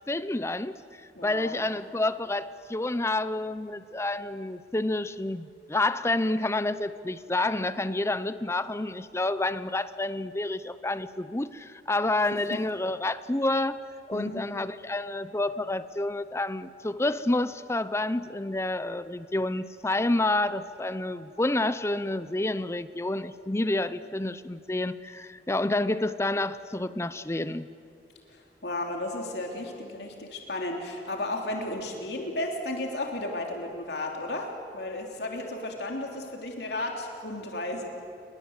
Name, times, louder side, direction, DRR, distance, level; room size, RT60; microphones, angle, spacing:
voice 1, 0.1-0.8 1.2-13.8 14.1-27.7, left 2 dB, 15° left, 14 dB, 0.6 m, -29 dB
voice 2, 1.1-1.6 12.5-12.6 14.1-14.4 28.3-37.9, left 1 dB, 65° left, 1 dB, 3.2 m, -34 dB
30.0 x 23.0 x 8.1 m, 2.6 s
head